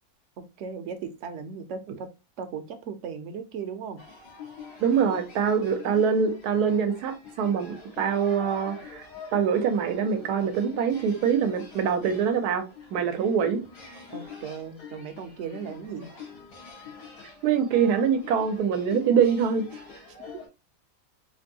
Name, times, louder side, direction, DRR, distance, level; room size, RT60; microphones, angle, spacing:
voice 1, 0.4-2.1 2.4-4.0 14.1-16.1, right 6 dB, 60° right, 0.8 m, -37 dB
sound 1, 4.0-20.5, left 5 dB, 85° left, 1.9 m, -45 dB
voice 2, 4.8-9.1 9.3-13.7 17.4-19.7, right 7 dB, 85° right, 1.2 m, -24 dB
4.2 x 2.6 x 2.7 m
omnidirectional pair, 1.6 m